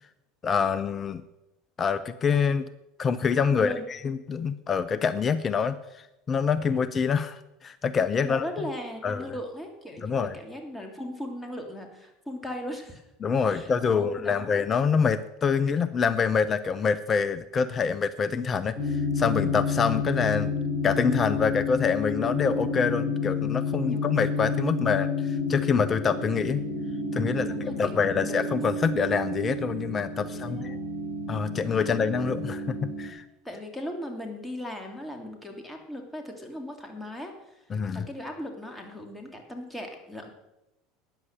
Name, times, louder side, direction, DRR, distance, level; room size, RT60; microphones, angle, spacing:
voice 1, 0.4-1.2 1.8-2.7 3.0-8.5 9.0-9.2 10.0-10.3 13.2-20.5 20.8-26.6 27.1-27.5 27.8-30.7 31.3-33.2 37.7-38.1, left 6 dB, 30° left, 14 dB, 0.7 m, -26 dB
voice 2, 3.5-3.9 8.2-13.0 13.4-14.7 23.8-24.0 24.7-25.0 27.2-28.6 30.2-30.8 31.8-31.9 33.4-37.6 37.9-40.3, equal, 10° left, 3 dB, 3.0 m, -38 dB
sound 1, 18.8-33.1, left 3 dB, 50° left, 5.3 m, -30 dB
13.0 x 9.7 x 6.7 m, 0.93 s
hypercardioid pair, 75°, 0 cm